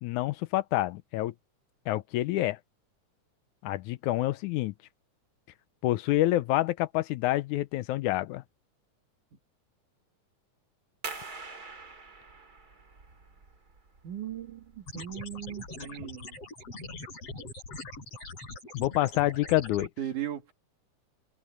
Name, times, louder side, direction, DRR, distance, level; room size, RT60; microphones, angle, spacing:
voice 1, 0.0-1.3 1.9-2.6 3.6-4.7 5.8-8.4 18.7-19.9, left 16 dB, 80° left, 2.0 m, -27 dB
sound 1, 11.0-16.4, right 4 dB, 30° right, 3.3 m, -45 dB
voice 2, 14.0-14.6 14.9-16.3 20.0-20.5, right 11 dB, 80° right, 3.7 m, -37 dB
sound 2, 14.9-19.9, left 2 dB, 50° left, 9.0 m, -42 dB
omnidirectional pair, 3.5 m